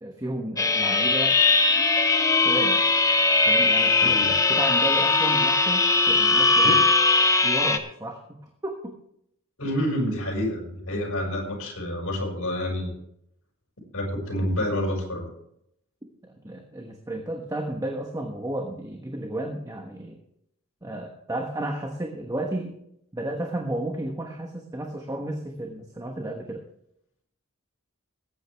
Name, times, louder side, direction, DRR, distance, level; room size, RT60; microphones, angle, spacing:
voice 1, 0.0-1.4 2.4-2.8 3.4-6.8 7.4-9.0 16.2-20.2 20.8-22.7 23.1-26.6, right 1 dB, 15° right, 2 dB, 1.2 m, -33 dB
sound 1, 0.6-7.8, left 3 dB, 15° left, 0.8 m, -20 dB
voice 2, 4.0-4.3 6.6-6.8 9.6-12.9 13.9-15.3, left 1 dB, 80° left, 0 dB, 5.4 m, -28 dB
20.0 x 9.0 x 3.5 m, 0.73 s
head